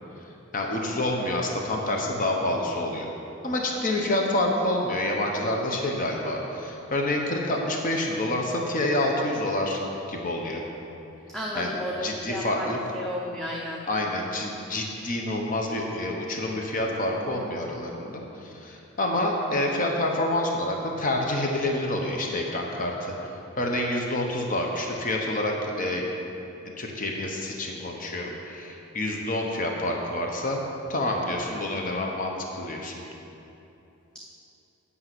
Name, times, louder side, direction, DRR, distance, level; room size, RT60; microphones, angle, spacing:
voice 1, 0.5-3.1 3.4-9.8 10.1-10.6 11.5-12.8 13.9-23.1 23.6-26.1 26.8-30.6 30.9-33.0, left 1 dB, 40° left, 0 dB, 1.0 m, -28 dB
voice 2, 11.3-12.7 12.9-13.9, equal, 5° left, -4 dB, 0.7 m, -33 dB
8.7 x 5.6 x 7.9 m, 2.9 s
head